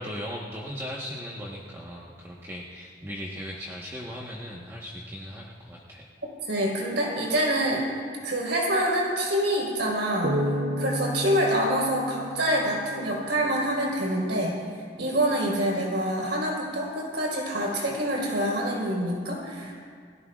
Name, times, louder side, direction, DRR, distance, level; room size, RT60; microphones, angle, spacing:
voice 1, 0.0-6.1, equal, 15° right, -4 dB, 1.2 m, -38 dB
voice 2, 6.5-7.8 8.2-10.4 10.8-14.6 15.0-19.8, right 1 dB, 85° right, -3 dB, 4.5 m, -26 dB
sound 1, 10.2-13.6, equal, 60° right, 1.0 m, -31 dB
30.0 x 17.0 x 2.4 m, 2.1 s
head